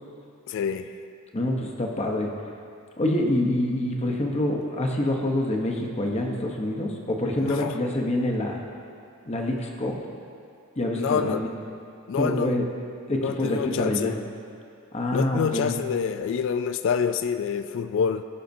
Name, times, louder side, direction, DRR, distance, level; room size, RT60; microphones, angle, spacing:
voice 1, 0.5-0.9 7.4-7.8 11.0-11.4 12.1-12.6 13.2-14.2 15.1-18.2, left 7 dB, 60° left, 10 dB, 0.3 m, -27 dB
voice 2, 1.3-2.3 3.0-8.6 9.3-10.0 10.8-11.5 12.2-12.6 13.1-14.1 14.9-15.7, left 1 dB, 30° left, 1 dB, 0.8 m, -26 dB
17.0 x 5.7 x 2.7 m, 2.5 s
head